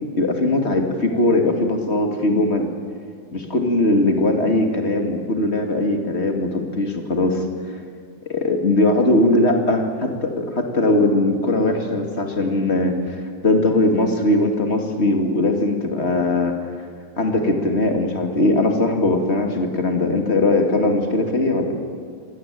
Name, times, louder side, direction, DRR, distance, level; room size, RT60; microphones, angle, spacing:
voice 1, 0.2-2.7 3.3-7.4 8.3-13.1 13.4-16.6 17.2-21.8, left 2 dB, 45° left, 4 dB, 2.7 m, -20 dB
24.0 x 17.0 x 9.3 m, 2.1 s
omnidirectional pair, 1.6 m